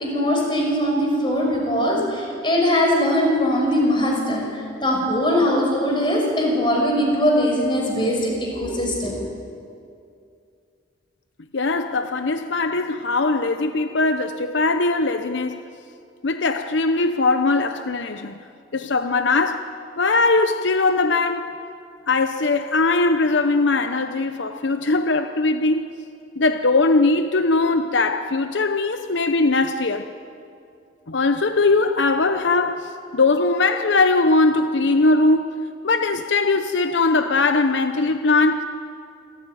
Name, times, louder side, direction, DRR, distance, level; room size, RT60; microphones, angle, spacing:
voice 1, 0.0-9.2, equal, 25° left, 5.7 m, -21 dB
voice 2, 11.5-15.6 16.2-18.4 18.7-19.7 20.0-21.6 22.1-25.8 26.4-30.1 31.1-38.6, left 3 dB, 80° left, 0.8 m, -20 dB
27.0 x 14.0 x 9.3 m
head